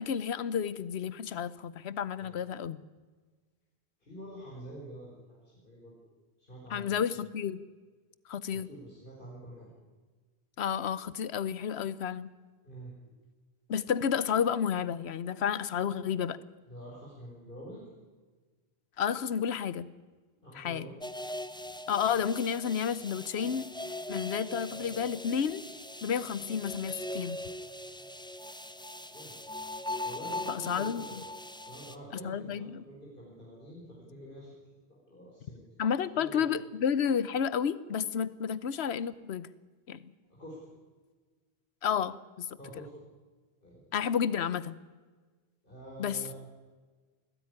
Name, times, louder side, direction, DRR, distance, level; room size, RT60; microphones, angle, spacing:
voice 1, 0.0-2.8 6.7-7.6 8.3-8.7 10.6-12.3 13.7-16.4 19.0-19.9 20.5-20.9 21.9-23.7 24.1-25.6 26.0-27.4 30.5-31.0 32.2-32.8 35.8-39.5 39.9-40.0 41.8-42.5 43.9-44.8 46.0-46.2, left 7 dB, 85° left, 17 dB, 1.1 m, -31 dB
voice 2, 4.0-6.0 6.4-7.0 8.5-9.7 12.6-13.1 16.7-17.8 20.4-21.0 29.0-29.4 30.0-31.3 31.5-34.5 34.9-35.6 36.1-36.4 40.3-40.6 42.6-43.0 43.6-43.8 45.6-46.4, right 1 dB, 55° left, -5 dB, 5.0 m, -47 dB
sound 1, 21.0-32.0, left 1 dB, 5° left, 0.7 m, -40 dB
20.5 x 15.5 x 9.7 m, 1.4 s
omnidirectional pair, 1.1 m